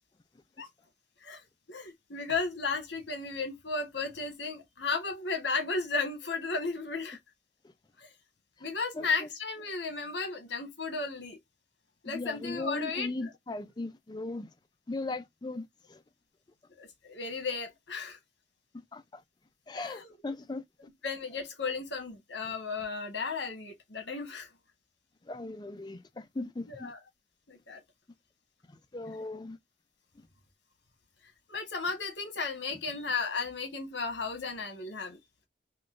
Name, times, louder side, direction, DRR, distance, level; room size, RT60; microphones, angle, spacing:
voice 1, 1.7-7.2 8.0-8.1 8.6-11.4 12.0-13.1 16.8-18.2 19.7-20.2 21.0-24.5 26.7-27.0 27.5-27.8 31.5-35.2, left 4 dB, 75° left, 1.2 m, -34 dB
voice 2, 8.9-9.3 12.0-14.5 14.9-16.0 18.7-19.2 19.7-20.6 25.3-26.9 28.7-29.6, left 2 dB, 25° left, 0.4 m, -38 dB
3.7 x 2.3 x 2.4 m
head